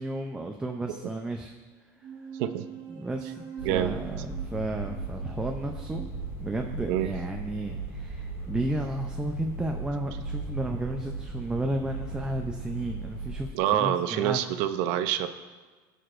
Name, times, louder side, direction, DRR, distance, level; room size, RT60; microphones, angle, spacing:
voice 1, 0.0-1.5 2.0-2.1 2.9-6.1 6.4-13.5 13.8-14.5, right 1 dB, 10° right, 2 dB, 0.5 m, -33 dB
sound 1, 2.0-7.0, right 8 dB, 50° right, 1.5 m, -44 dB
sound 2, 3.6-13.5, right 3 dB, 30° left, 3.3 m, -37 dB
voice 2, 3.6-4.0 6.9-7.1 13.5-15.3, right 11 dB, 75° right, 10 dB, 0.6 m, -26 dB
19.5 x 6.6 x 2.5 m, 1.4 s
cardioid pair, 140°, 9 cm